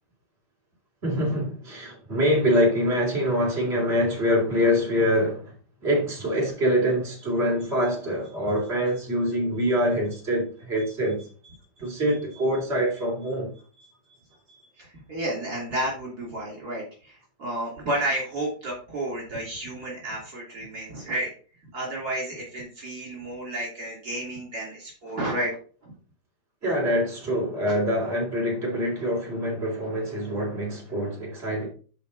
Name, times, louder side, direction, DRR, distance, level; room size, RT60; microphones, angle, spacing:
voice 1, 1.0-5.5 5.8-11.2 11.8-13.5 26.6-31.7, equal, 35° right, 3.7 m, -25 dB
voice 2, 11.8-12.4 13.8-14.2 14.5-21.3 21.7-25.6 25.8-25.9, right 1 dB, 60° right, 3.5 m, -32 dB
10.5 x 5.0 x 4.0 m
omnidirectional pair, 1.8 m